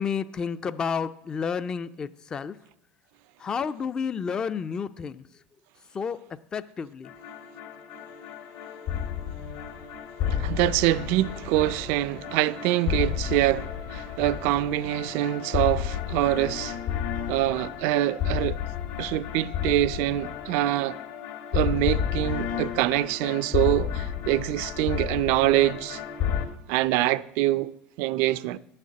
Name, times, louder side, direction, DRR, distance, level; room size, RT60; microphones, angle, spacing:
voice 1, 0.0-2.6 3.4-5.2 5.9-6.2 6.5-7.1, left 6 dB, 20° left, 0.3 m, -30 dB
sound 1, 7.0-26.5, left 8 dB, 75° left, 2.1 m, -32 dB
voice 2, 10.3-16.8 17.3-18.6 19.0-21.0 21.5-26.0 26.7-28.6, right 15 dB, 65° right, 0.4 m, -25 dB
11.5 x 6.5 x 8.5 m
cardioid pair, 145°, 4 cm